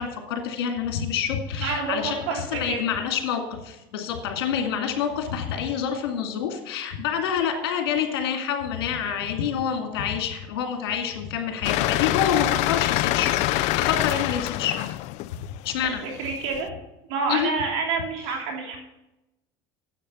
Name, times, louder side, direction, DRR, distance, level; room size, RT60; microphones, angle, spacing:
voice 1, 0.0-14.8 15.6-16.1 17.3-17.5, left 8 dB, 85° left, 3 dB, 2.2 m, -27 dB
voice 2, 1.6-2.8 16.2-16.7 17.1-18.8, right 4 dB, 75° right, 1 dB, 2.9 m, -28 dB
sound 1, 11.6-16.6, left 17 dB, 65° left, 0.4 m, -25 dB
9.9 x 8.0 x 5.6 m, 0.94 s
supercardioid pair, 95°, 13 cm